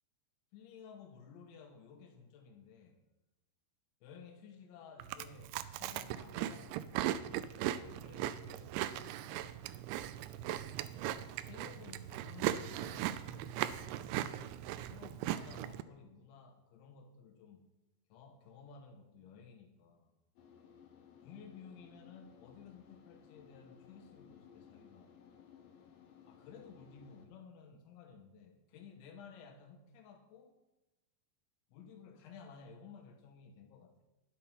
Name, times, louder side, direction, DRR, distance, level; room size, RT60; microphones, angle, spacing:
voice 1, 0.5-3.0 4.0-10.0 11.2-14.2 14.9-17.7 18.1-20.1 21.2-25.1 26.3-30.6 31.7-34.0, left 6 dB, 85° left, 4 dB, 3.4 m, -55 dB
Chewing mastication, 5.0-15.8, right 12 dB, 85° right, 2.8 m, -38 dB
sound 1, 20.4-27.3, left 7 dB, 65° left, 2.4 m, -59 dB
10.5 x 8.3 x 5.8 m, 1.0 s
omnidirectional pair, 5.3 m